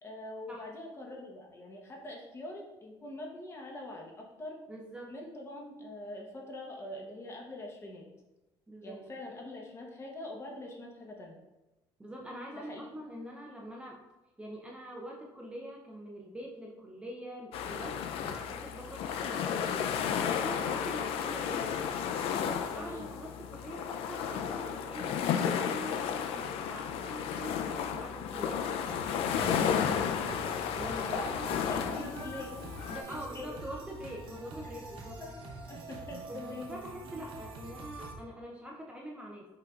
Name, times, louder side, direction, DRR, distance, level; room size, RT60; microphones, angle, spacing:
voice 1, 0.0-4.6 5.1-8.0 8.8-11.4 12.7-12.9 22.7-23.1 31.0-32.7 33.0-33.5 34.6-34.7 35.2-35.3 35.6-36.7, left 1 dB, 25° left, 0 dB, 0.9 m, -43 dB
voice 2, 4.7-5.1 8.7-9.0 12.0-14.0 14.4-19.8 20.3-21.8 22.4-28.7 29.3-29.9 30.8-31.5 32.9-35.2 36.3-39.6, equal, 10° right, -2 dB, 0.5 m, -44 dB
sound 1, 17.5-33.0, left 8 dB, 75° left, 0.4 m, -33 dB
sound 2, 28.9-38.1, right 3 dB, 60° right, 0.8 m, -45 dB
5.7 x 3.7 x 2.4 m, 1.0 s
cardioid pair, 125°, 10 cm